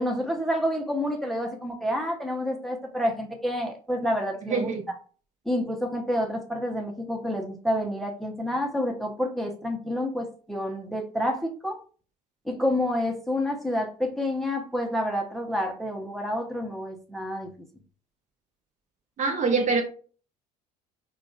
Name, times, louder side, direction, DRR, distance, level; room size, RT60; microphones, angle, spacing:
voice 1, 0.0-4.7 5.5-11.8 12.5-17.5, left 1 dB, ahead, 0.7 m, -28 dB
voice 2, 4.5-4.9 19.2-19.8, right 4 dB, 40° right, 0.7 m, -24 dB
4.8 x 2.3 x 2.4 m
figure-of-eight pair, 60°, 20 cm